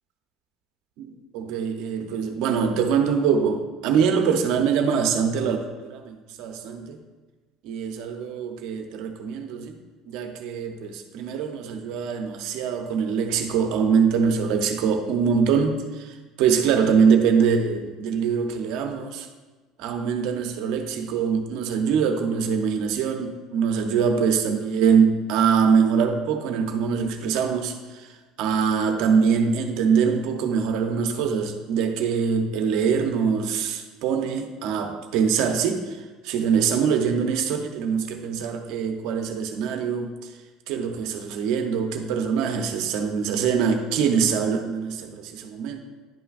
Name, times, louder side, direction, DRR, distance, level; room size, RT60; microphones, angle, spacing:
voice 1, 1.0-7.0 7.6-9.8 10.1-19.3 19.8-40.3 40.7-45.8, right 6 dB, 65° right, 6 dB, 0.7 m, -23 dB
10.5 x 5.8 x 2.4 m, 1.3 s
cardioid pair, 160°, 0 cm